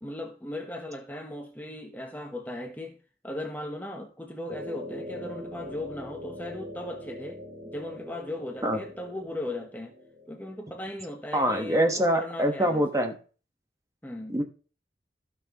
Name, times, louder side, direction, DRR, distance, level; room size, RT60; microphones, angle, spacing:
voice 1, 0.0-3.0 3.2-9.9 10.3-12.8 14.0-14.4, left 1 dB, 10° left, 1.0 m, -37 dB
sound 1, 4.5-10.6, left 1 dB, 50° right, 2.5 m, -42 dB
voice 2, 11.3-13.2 14.3-14.4, equal, 15° right, 1.2 m, -24 dB
16.0 x 6.0 x 3.0 m
head